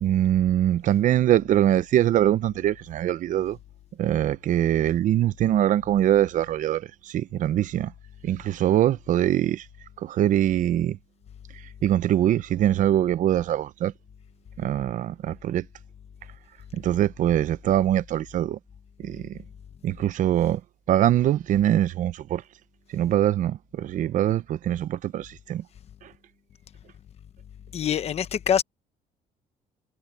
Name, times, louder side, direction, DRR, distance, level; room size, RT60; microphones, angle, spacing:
voice 1, 0.0-3.6 4.0-7.9 8.2-9.7 10.0-11.0 11.8-13.9 14.6-15.7 16.7-18.6 19.0-19.4 19.8-20.6 20.9-22.4 22.9-25.6 26.0-26.1, right 12 dB, 55° right, 0.7 m, -23 dB
voice 2, 27.7-28.6, left 9 dB, 40° left, 1.0 m, -24 dB
cardioid pair, 165°, 16 cm